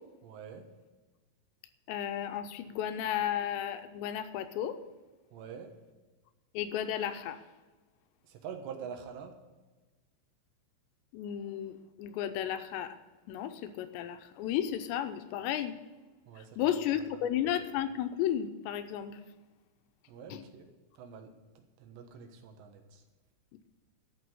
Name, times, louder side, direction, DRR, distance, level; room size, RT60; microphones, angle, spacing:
voice 1, 0.2-0.7 5.3-5.7 8.3-9.4 16.3-16.6 16.9-17.0 20.1-20.7 21.0-23.0, right 7 dB, 80° right, 5 dB, 3.4 m, -46 dB
voice 2, 1.9-4.8 6.5-7.4 11.1-13.0 13.3-15.8 16.4-19.2 20.3-20.4, left 10 dB, 90° left, 9 dB, 3.0 m, -33 dB
13.0 x 6.1 x 9.3 m, 1.2 s
omnidirectional pair, 5.0 m